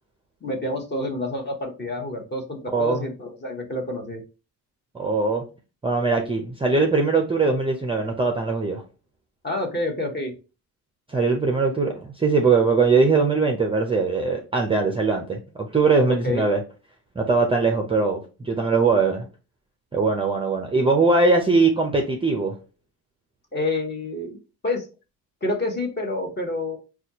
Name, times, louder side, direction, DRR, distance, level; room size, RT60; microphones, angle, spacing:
voice 1, 0.4-4.2 9.4-10.3 16.1-16.4 23.5-24.4 24.6-24.9 25.4-26.8, left 2 dB, 25° left, 1 dB, 1.0 m, -28 dB
voice 2, 2.7-3.1 4.9-5.4 5.8-8.8 11.1-16.6 17.2-19.3 19.9-22.6, right 4 dB, 15° right, 2 dB, 0.5 m, -21 dB
4.1 x 2.4 x 2.8 m, 0.32 s
cardioid pair, 115°, 40 cm